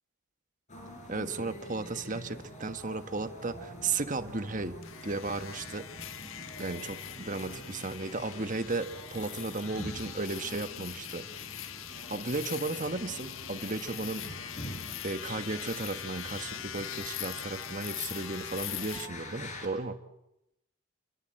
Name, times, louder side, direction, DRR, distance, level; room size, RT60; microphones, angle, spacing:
sound 1, 0.7-19.7, equal, 35° left, 5.1 m, -46 dB
voice 1, 1.1-4.8 5.0-5.9 6.6-11.3 12.1-14.5 15.0-20.0, right 3 dB, 35° right, 9 dB, 1.4 m, -35 dB
sound 2, 4.8-19.1, left 11 dB, 70° left, 1.4 m, -42 dB
30.0 x 24.5 x 7.8 m, 0.86 s
head